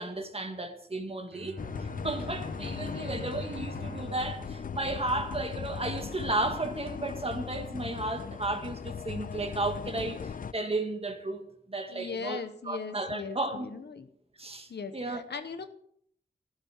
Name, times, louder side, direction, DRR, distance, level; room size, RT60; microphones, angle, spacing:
voice 1, 0.0-1.6 2.0-13.7 14.4-15.2, right 2 dB, 35° right, 2.0 m, -34 dB
Bowed string instrument, 1.3-7.0, right 3 dB, 90° right, 1.2 m, -46 dB
sound 1, 1.6-10.5, left 6 dB, 55° left, 0.5 m, -38 dB
voice 2, 2.7-3.2 11.9-14.1 14.7-15.7, left 5 dB, 85° left, 1.2 m, -39 dB
14.5 x 12.5 x 4.6 m
wide cardioid pair, 85°, 17 cm